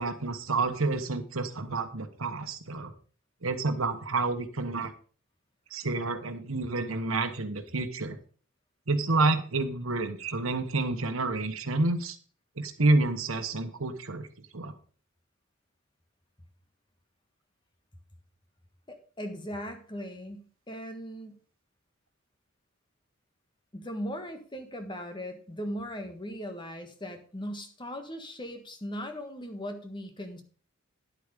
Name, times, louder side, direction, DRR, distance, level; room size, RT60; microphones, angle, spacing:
voice 1, 0.0-2.9 3.4-4.9 5.7-8.2 8.9-12.2 12.6-14.7, right 2 dB, 90° right, 8 dB, 1.2 m, -29 dB
voice 2, 18.9-21.4 23.7-30.4, equal, 25° left, 7 dB, 1.5 m, -38 dB
10.5 x 8.3 x 5.2 m, 0.41 s
head